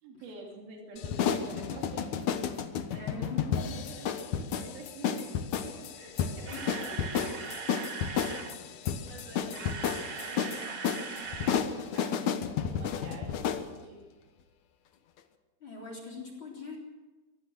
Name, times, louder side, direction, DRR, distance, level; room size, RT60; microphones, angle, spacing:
voice 1, 0.0-2.3 2.9-5.3 5.6-8.2 8.6-12.3 12.6-14.0, right 3 dB, 80° right, 0 dB, 4.6 m, -48 dB
sound 1, 1.0-13.7, left 8 dB, 65° left, 2.2 m, -32 dB
voice 2, 2.9-3.8 6.5-6.7 15.6-16.8, left 3 dB, 35° left, 1 dB, 4.2 m, -42 dB
Camera, 6.2-8.6 9.3-11.6 11.9-12.0 12.5-12.6, right 6 dB, 50° right, 2.0 m, -40 dB
23.5 x 18.0 x 6.3 m, 1.3 s
omnidirectional pair, 4.2 m